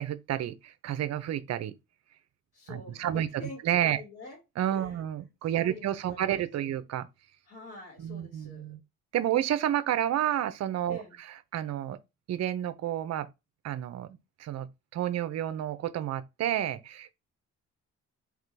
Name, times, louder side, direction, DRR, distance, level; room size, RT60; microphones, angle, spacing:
voice 1, 0.0-1.7 2.7-3.3 3.6-4.0 4.6-7.1 8.0-8.8 9.1-11.0 11.5-12.0 12.3-13.3 13.6-17.1, right 11 dB, 60° right, 0.6 m, -30 dB
voice 2, 2.5-4.4 4.7-5.0 5.5-6.8 7.5-8.7 10.9-11.2, left 2 dB, 45° left, 2.2 m, -47 dB
3.7 x 3.1 x 3.3 m
cardioid pair, 90°, 30 cm